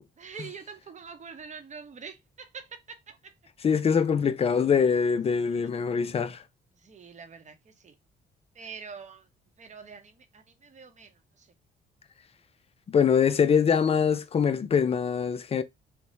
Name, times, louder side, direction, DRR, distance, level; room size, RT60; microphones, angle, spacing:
voice 1, 0.2-3.3 5.4-5.7 6.8-7.9 8.5-9.3 9.6-11.5, right 6 dB, 35° right, 0.7 m, -45 dB
voice 2, 3.6-6.4 12.9-15.6, left 6 dB, 30° left, 0.4 m, -23 dB
3.1 x 2.0 x 2.6 m
cardioid pair, 90°, 20 cm